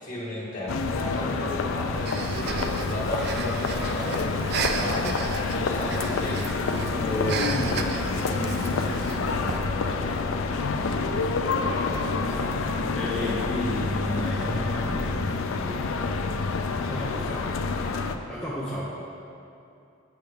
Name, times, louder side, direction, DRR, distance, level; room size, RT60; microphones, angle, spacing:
voice 1, 0.0-6.5 13.6-14.8, left 1 dB, 40° left, -6 dB, 1.6 m, -33 dB
sound 1, 0.7-18.2, left 4 dB, 85° left, 0.4 m, -28 dB
Breathing, 2.1-9.6, right 5 dB, 50° right, 0.3 m, -34 dB
voice 2, 6.9-10.2 10.8-12.5 13.0-17.6 17.9-18.8, equal, 5° left, -9 dB, 0.6 m, -35 dB
7.6 x 5.6 x 3.5 m, 2.7 s
head